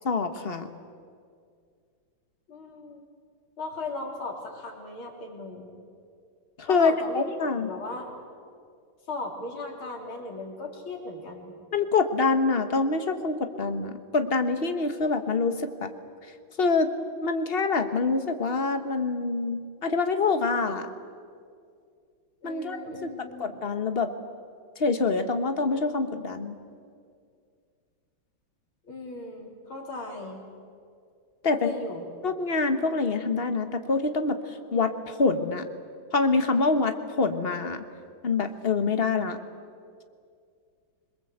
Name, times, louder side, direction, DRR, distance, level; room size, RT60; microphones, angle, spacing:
voice 1, 0.0-0.7 6.6-7.7 11.7-15.9 16.6-16.9 17.2-20.9 22.4-23.1 23.4-24.1 24.8-26.5 31.4-31.7 32.2-35.6 36.1-37.8 38.2-39.4, left 4 dB, 35° left, 8 dB, 1.3 m, -26 dB
voice 2, 2.5-3.0 3.6-5.7 6.7-8.1 9.1-11.5 22.4-23.5 28.9-30.4 31.5-32.1, left 3 dB, 80° left, 1 dB, 4.1 m, -37 dB
26.5 x 22.0 x 8.1 m, 2.2 s
omnidirectional pair, 2.2 m